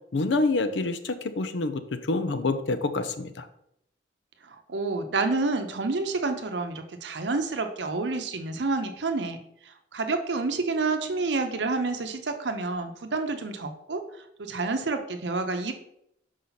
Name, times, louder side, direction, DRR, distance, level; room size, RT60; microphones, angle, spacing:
voice 1, 0.1-1.8 2.1-3.5, left 3 dB, 80° left, 10 dB, 0.6 m, -27 dB
voice 2, 4.5-9.4 9.9-14.0 14.4-15.7, right 3 dB, 70° right, 6 dB, 0.7 m, -29 dB
5.7 x 4.9 x 4.0 m, 0.76 s
head